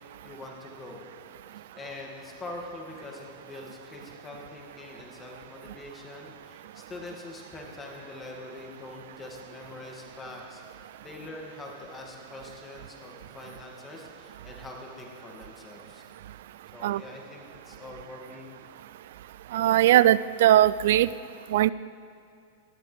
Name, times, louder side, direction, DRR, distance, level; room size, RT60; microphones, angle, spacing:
voice 1, 0.2-1.0 1.8-16.0 16.7-18.5, left 2 dB, 15° left, -1 dB, 2.3 m, -44 dB
voice 2, 19.5-21.1 21.5-21.7, right 13 dB, 70° right, 18 dB, 0.3 m, -20 dB
19.5 x 12.0 x 3.5 m, 2.6 s
supercardioid pair, 150°, 0 cm